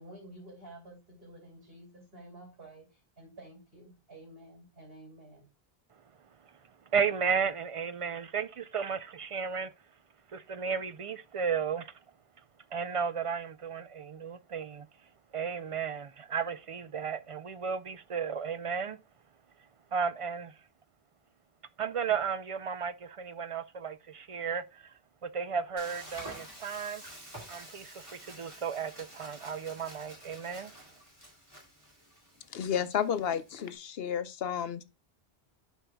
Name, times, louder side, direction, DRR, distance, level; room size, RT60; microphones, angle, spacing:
voice 1, 0.0-5.5, right 1 dB, 70° right, 3.0 m, -51 dB
voice 2, 6.4-9.7 10.3-12.0 12.7-19.0 19.9-20.6 21.8-27.0 27.5-30.7, right 6 dB, 55° right, 0.3 m, -34 dB
Frying (food), 25.8-33.8, equal, 20° right, 2.4 m, -49 dB
voice 3, 32.5-34.8, left 8 dB, 75° left, 0.9 m, -31 dB
11.0 x 4.6 x 2.2 m
omnidirectional pair, 1.0 m